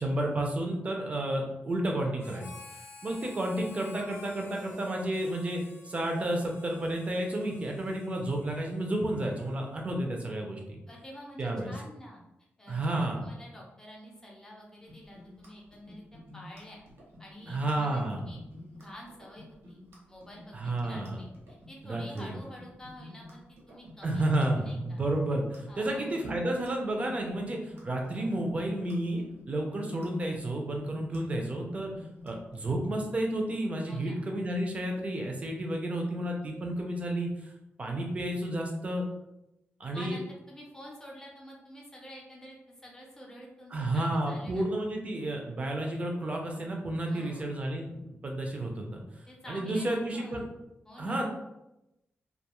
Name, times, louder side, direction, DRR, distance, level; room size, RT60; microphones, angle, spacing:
voice 1, 0.0-2.5 3.0-10.8 11.4-11.7 12.7-13.2 17.5-18.3 20.5-21.2 21.8-22.3 24.0-31.9 32.2-37.5 37.8-39.1 39.8-40.2 43.7-47.9 48.2-49.0 49.5-50.5 51.0-51.3, right 1 dB, 30° right, 1 dB, 0.5 m, -31 dB
Harmonica, 2.2-9.9, left 3 dB, 60° left, 0.6 m, -51 dB
voice 2, 10.9-12.2 12.6-16.0 16.3-16.8 17.2-18.4 18.7-19.8 20.1-24.2 24.6-25.0 25.7-26.2 33.9-34.2 39.9-44.7 47.0-47.6 49.3-50.5 50.8-51.3, equal, 15° left, -2 dB, 0.6 m, -49 dB
sound 1, 14.9-32.8, left 1 dB, 85° right, 0.9 m, -50 dB
2.4 x 2.3 x 2.9 m, 0.90 s
wide cardioid pair, 145°, 4 cm